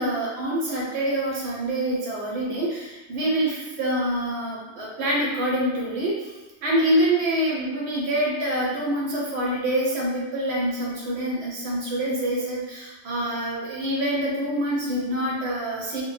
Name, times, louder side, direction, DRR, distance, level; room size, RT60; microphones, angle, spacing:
voice 1, 0.0-6.3 6.6-16.0, right 1 dB, 65° right, -4 dB, 0.8 m, -26 dB
2.1 x 2.0 x 3.1 m, 1.1 s
omnidirectional pair, 1.3 m